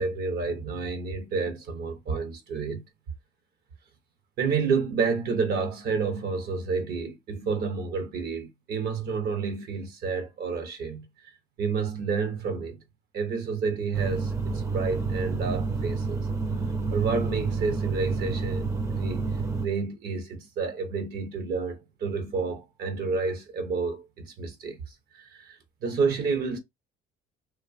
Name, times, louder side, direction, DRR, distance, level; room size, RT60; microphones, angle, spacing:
voice 1, 0.0-2.8 4.4-11.1 11.6-12.8 13.1-16.2 16.9-19.3 19.6-26.6, right 5 dB, 65° right, 0.7 m, -30 dB
sound 1, 13.9-19.7, right 4 dB, 15° right, 0.5 m, -29 dB
2.6 x 2.1 x 2.4 m
cardioid pair, 110°, 17 cm